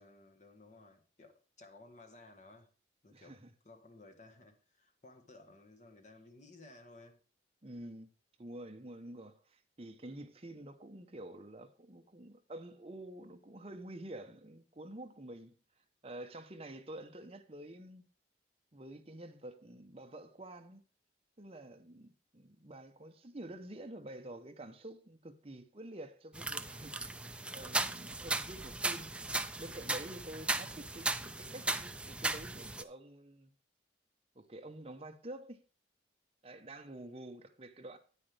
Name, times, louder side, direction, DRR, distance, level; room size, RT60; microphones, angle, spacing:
voice 1, 0.0-2.7 3.0-3.4 3.6-7.2, left 2 dB, 40° left, 1.5 m, -57 dB
voice 2, 3.1-3.5 7.6-8.1 8.4-15.5 16.0-18.0 18.7-20.8 21.4-27.0 27.5-29.1 29.6-33.5 34.3-35.6 36.4-38.0, right 1 dB, 30° right, 0.9 m, -48 dB
sound 1, 26.3-32.8, right 2 dB, 5° right, 0.3 m, -37 dB
9.5 x 8.9 x 3.4 m
head